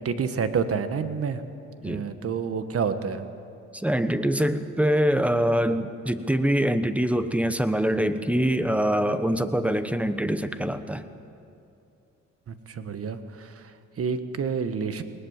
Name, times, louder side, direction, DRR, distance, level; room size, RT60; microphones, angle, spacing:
voice 1, 0.0-1.4 1.8-3.3 12.5-15.0, right 6 dB, 50° right, 10 dB, 1.5 m, -29 dB
voice 2, 3.7-11.0, equal, 5° right, 10 dB, 1.2 m, -24 dB
20.0 x 19.5 x 7.4 m, 2.6 s
cardioid pair, 90°, 30 cm